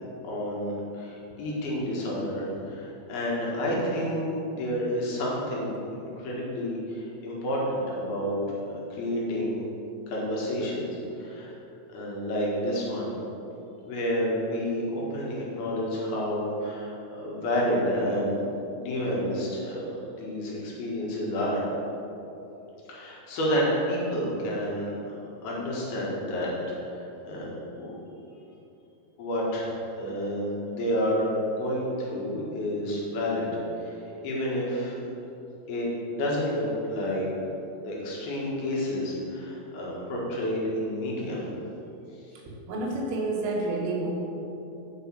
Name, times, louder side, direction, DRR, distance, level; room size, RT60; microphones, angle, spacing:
voice 1, 0.2-8.4 8.7-9.6 10.1-10.9 11.2-11.5 11.9-13.1 13.9-18.5 18.8-21.6 22.9-26.5 26.9-27.5 27.8-27.9 29.2-33.5 33.8-35.0 35.7-37.3 37.8-41.4, equal, 60° left, -4 dB, 3.1 m, -30 dB
voice 2, 42.5-44.1, right 2 dB, 85° right, -1 dB, 3.8 m, -29 dB
8.1 x 5.3 x 7.1 m, 2.9 s
omnidirectional pair, 5.6 m